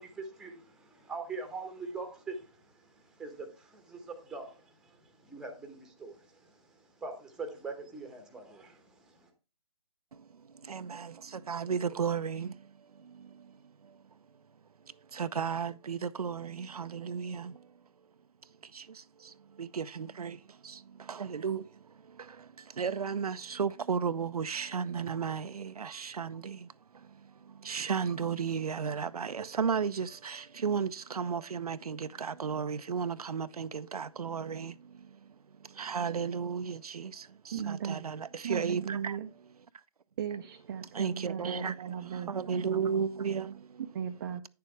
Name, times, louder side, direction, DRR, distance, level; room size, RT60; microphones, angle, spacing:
voice 1, 0.0-9.3, right 3 dB, 5° right, 1.0 m, -43 dB
voice 2, 10.1-14.0 14.9-17.7 18.6-39.2 40.9-43.8, right 6 dB, 85° right, 0.6 m, -35 dB
voice 3, 37.5-38.0 38.4-39.3 40.2-42.7 43.9-44.5, right 8 dB, 35° right, 0.5 m, -37 dB
9.5 x 6.8 x 3.4 m
hypercardioid pair, 150°, 19 cm